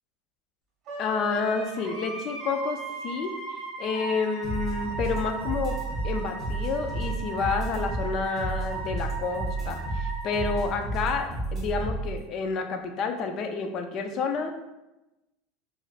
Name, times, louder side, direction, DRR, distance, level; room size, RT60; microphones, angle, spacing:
Wind instrument woodwind instrument, 0.9-10.7, right 4 dB, 35° right, 1.5 m, -38 dB
voice 1, 1.0-2.8 3.0-5.7 6.0-14.5, left 5 dB, 40° left, 5 dB, 0.3 m, -29 dB
sound 1, 4.4-12.2, right 2 dB, ahead, 1.0 m, -32 dB
3.1 x 2.4 x 2.4 m, 0.97 s
supercardioid pair, 145°, 0 cm